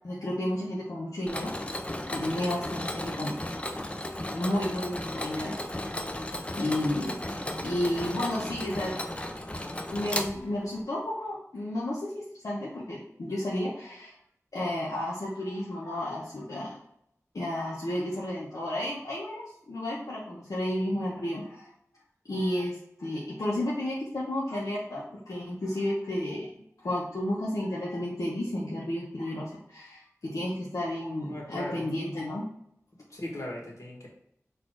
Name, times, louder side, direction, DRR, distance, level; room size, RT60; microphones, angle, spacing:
voice 1, 0.0-1.5 1.9-3.5 4.3-5.6 6.6-7.2 7.6-9.0 9.9-14.1 14.5-16.8 17.3-21.7 22.3-26.5 26.8-32.4, left 1 dB, 80° left, -6 dB, 0.9 m, -32 dB
Mechanisms, 1.3-10.8, left 1 dB, 20° left, 0.5 m, -35 dB
voice 2, 31.3-31.9 33.1-34.1, left 1 dB, 60° left, -2 dB, 1.5 m, -38 dB
4.1 x 2.6 x 4.5 m, 0.73 s
wide cardioid pair, 55°, 6 cm